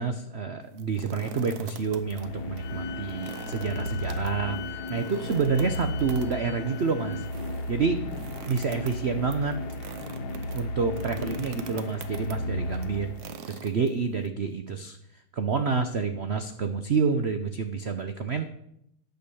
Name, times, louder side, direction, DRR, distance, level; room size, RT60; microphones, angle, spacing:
voice 1, 0.0-7.2 7.7-8.0 8.5-9.6 10.5-13.1 13.5-15.0 15.3-18.5, right 5 dB, 85° right, 8 dB, 0.5 m, -28 dB
sound 1, 0.6-2.3 2.6-2.7 3.1-14.3, right 7 dB, 60° right, 1.2 m, -44 dB
sound 2, 1.8-13.6, left 1 dB, 60° left, 1.5 m, -34 dB
Wind instrument woodwind instrument, 2.6-7.3, left 13 dB, 80° left, 0.7 m, -44 dB
10.5 x 8.0 x 6.9 m, 0.76 s
omnidirectional pair, 2.2 m